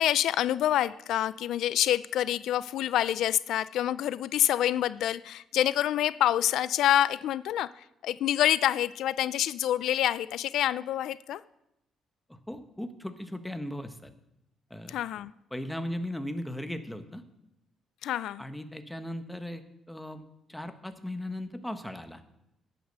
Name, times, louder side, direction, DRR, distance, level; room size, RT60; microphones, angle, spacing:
voice 1, 0.0-11.4 14.9-15.3 18.0-18.4, left 12 dB, 80° left, 0.3 m, -27 dB
voice 2, 12.3-14.1 14.7-14.9 15.5-17.2 18.4-20.2 20.5-22.2, left 1 dB, 5° left, 1.2 m, -37 dB
10.5 x 8.6 x 6.7 m
cardioid pair, 90°, 0 cm